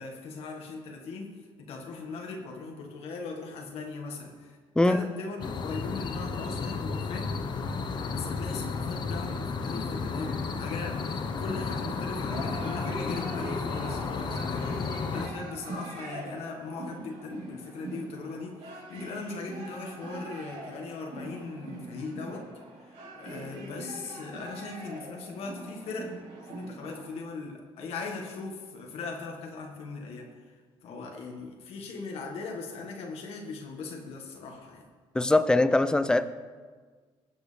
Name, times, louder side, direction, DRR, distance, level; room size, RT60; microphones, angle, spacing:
voice 1, 0.0-4.6 4.8-7.4 8.1-22.5 22.8-26.2 26.4-34.9, left 4 dB, 75° left, 1 dB, 1.7 m, -39 dB
sound 1, 5.4-15.3, left 4 dB, 45° left, 1.0 m, -33 dB
sound 2, 10.3-27.2, right 2 dB, 75° right, 3.6 m, -42 dB
voice 2, 35.1-36.3, left 2 dB, 10° left, 12 dB, 0.5 m, -22 dB
19.0 x 8.1 x 3.4 m, 1.5 s
cardioid pair, 115°, 10 cm